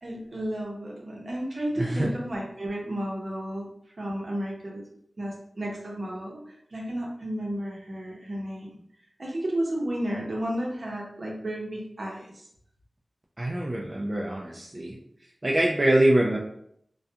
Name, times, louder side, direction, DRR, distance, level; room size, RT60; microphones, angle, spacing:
voice 1, 0.0-3.7 4.0-4.8 5.2-8.7 9.2-12.5, right 1 dB, 55° right, -2 dB, 0.7 m, -32 dB
voice 2, 1.8-2.1 13.4-15.0 15.4-16.4, right 1 dB, 30° right, -3 dB, 0.3 m, -24 dB
2.7 x 2.2 x 2.3 m, 0.70 s
wide cardioid pair, 75°, 0 cm